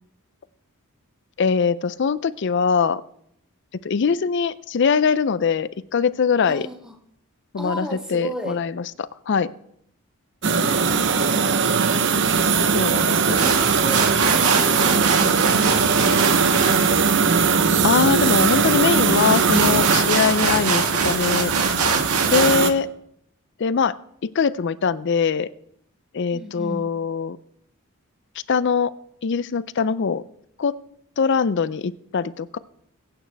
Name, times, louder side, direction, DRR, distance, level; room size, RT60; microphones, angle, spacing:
voice 1, 1.4-3.0 3.8-6.7 7.5-9.5 12.7-13.4 17.8-21.5 22.3-22.9 23.6-23.9 24.2-25.5 26.1-27.4 28.5-28.9 29.2-30.2 30.6-30.8 31.2-32.6, left 6 dB, 55° left, 17 dB, 0.4 m, -22 dB
voice 2, 6.5-7.0 7.6-8.6 12.9-16.6 22.2-22.4 26.3-26.8, equal, 5° right, 4 dB, 1.3 m, -34 dB
sound 1, 10.4-22.7, right 5 dB, 55° right, 0.8 m, -20 dB
sound 2, 13.1-22.6, right 5 dB, 85° right, 1.7 m, -25 dB
22.5 x 8.9 x 3.4 m, 0.70 s
head